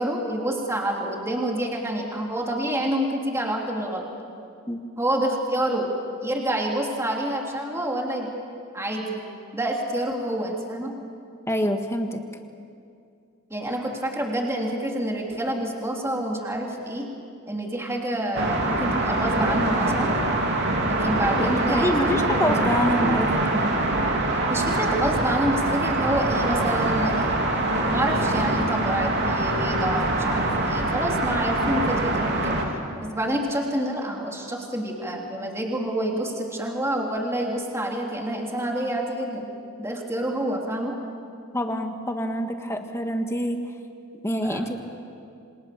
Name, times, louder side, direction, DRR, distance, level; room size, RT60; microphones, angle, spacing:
voice 1, 0.0-4.1 5.0-5.9 6.2-8.3 8.7-9.2 9.5-10.9 13.5-17.1 17.5-20.1 20.8-21.9 22.4-22.6 24.5-27.3 27.9-32.5 33.0-39.5 39.8-40.9 44.4-44.7, right 1 dB, 10° right, 0 dB, 3.1 m, -27 dB
voice 2, 11.5-12.2 21.3-23.4 41.5-43.6 44.2-44.8, equal, 10° left, 5 dB, 1.7 m, -26 dB
sound 1, 18.3-32.6, right 2 dB, 50° right, 3.1 m, -24 dB
28.0 x 26.0 x 7.0 m, 2.4 s
head